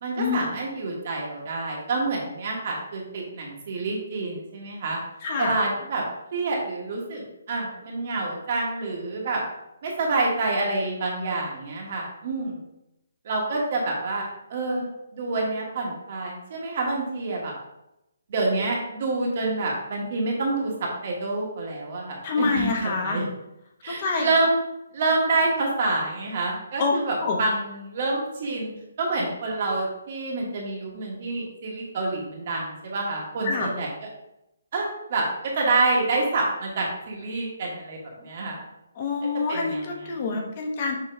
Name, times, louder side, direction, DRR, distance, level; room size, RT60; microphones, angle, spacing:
voice 1, 0.0-5.0 5.4-6.0 6.3-9.4 9.8-12.6 13.2-17.5 18.3-23.3 23.8-24.6 24.9-28.7 29.0-33.9 34.7-35.3 35.5-38.6 39.5-40.5, right 3 dB, 30° right, -2 dB, 1.1 m, -27 dB
voice 2, 5.2-5.5 22.2-23.2 23.9-24.3 26.8-26.9 27.2-27.4 33.4-33.7 39.0-41.0, left 4 dB, 20° left, 1 dB, 0.8 m, -26 dB
6.6 x 2.9 x 5.0 m, 0.86 s
hypercardioid pair, 180°, 0 cm